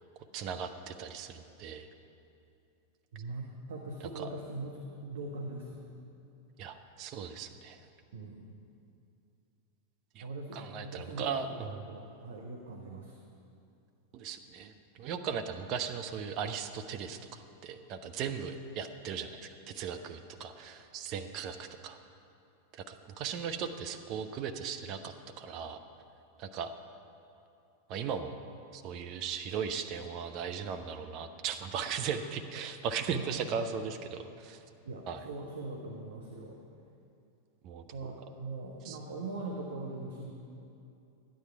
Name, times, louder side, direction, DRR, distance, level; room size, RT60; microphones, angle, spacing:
voice 1, 0.3-1.9 4.2-4.3 6.6-7.8 10.1-11.8 14.1-22.0 22.7-25.8 26.4-26.7 27.9-28.3 28.7-34.6 35.1-35.2 37.6-37.8 38.8-39.0, right 7 dB, 40° right, 7 dB, 0.6 m, -37 dB
voice 2, 3.1-5.9 8.1-8.5 10.2-11.6 11.9-13.2 33.1-33.7 34.8-36.6 37.9-40.3, right 2 dB, 65° right, 0 dB, 1.0 m, -41 dB
12.0 x 9.8 x 4.6 m, 2.6 s
figure-of-eight pair, 90°, 0 cm